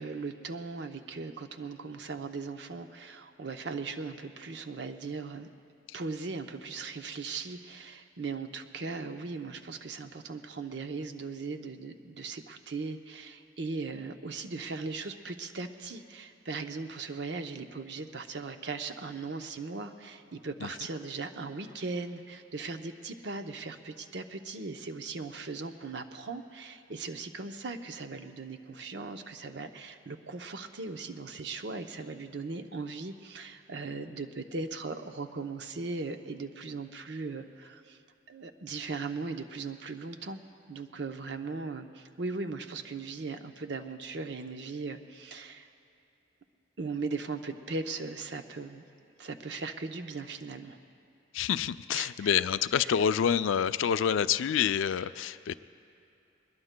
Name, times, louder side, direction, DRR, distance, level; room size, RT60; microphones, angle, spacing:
voice 1, 0.0-5.5 5.9-38.0 38.3-40.4 40.7-45.7 46.8-48.8 49.2-50.8 51.9-52.1 52.8-52.9, right 4 dB, 65° right, 6 dB, 0.7 m, -38 dB
voice 2, 51.3-55.5, left 8 dB, 90° left, 14 dB, 0.4 m, -27 dB
21.5 x 21.0 x 2.2 m, 2.8 s
head